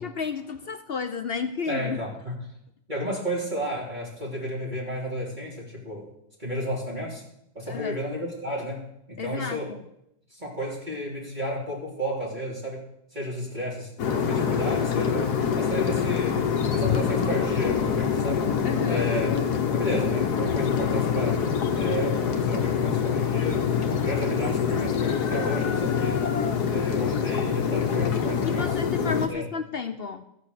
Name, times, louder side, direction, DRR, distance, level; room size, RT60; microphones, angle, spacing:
voice 1, 0.0-2.0 7.7-8.0 9.2-9.8 18.6-19.1 28.4-30.3, left 5 dB, 55° left, 10 dB, 0.7 m, -32 dB
voice 2, 1.7-2.4 2.9-6.1 6.4-7.2 7.5-8.8 9.1-9.7 10.3-12.8 13.1-16.4 16.7-18.6 18.8-19.3 19.7-21.4 21.7-23.6 24.0-26.2 26.7-28.8 29.3-29.4, equal, 30° right, -6 dB, 3.3 m, -32 dB
sound 1, 14.0-29.3, left 7 dB, 75° left, 1.7 m, -25 dB
14.0 x 8.5 x 6.7 m, 0.78 s
omnidirectional pair, 1.7 m